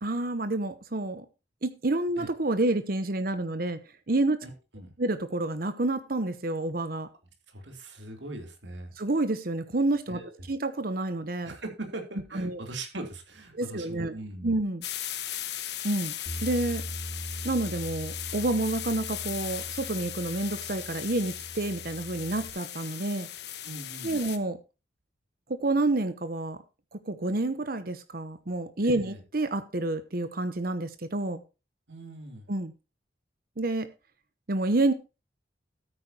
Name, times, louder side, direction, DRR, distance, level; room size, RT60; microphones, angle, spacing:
voice 1, 0.0-1.3 1.6-3.8 4.1-4.4 5.0-7.1 9.0-10.2 10.5-11.6 12.3-12.6 13.5-14.1 14.4-14.8 15.8-16.1 16.4-16.8 17.4-23.3 24.0-24.6 25.5-26.6 26.9-31.4 32.5-32.7 33.6-33.9 34.5-34.9, right 2 dB, 55° right, 0.9 m, -29 dB
voice 2, 4.4-4.9 7.5-8.9 10.1-10.5 11.4-14.5 23.6-24.2 28.8-29.2 31.9-32.5, right 2 dB, 85° right, 3.3 m, -41 dB
sound 1, 14.8-24.4, left 12 dB, 65° left, 1.1 m, -38 dB
Bass guitar, 16.3-22.5, equal, 35° left, 3.7 m, -41 dB
13.0 x 9.3 x 2.9 m
head